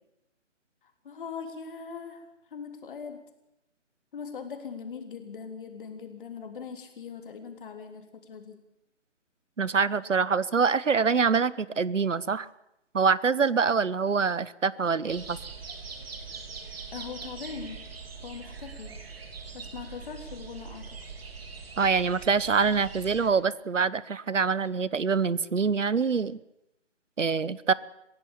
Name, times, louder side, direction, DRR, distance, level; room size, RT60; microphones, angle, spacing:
voice 1, 1.0-3.2 4.1-8.6 16.9-17.9 18.2-19.0 19.5-21.0, left 6 dB, 45° left, 5 dB, 3.5 m, -41 dB
voice 2, 9.6-12.5 12.9-15.4 21.8-26.4 27.2-27.7, right 5 dB, 85° right, 20 dB, 1.0 m, -25 dB
sound 1, 15.1-23.3, right 5 dB, 55° right, 3.5 m, -42 dB
24.0 x 16.5 x 7.1 m, 0.84 s
figure-of-eight pair, 150°, 36 cm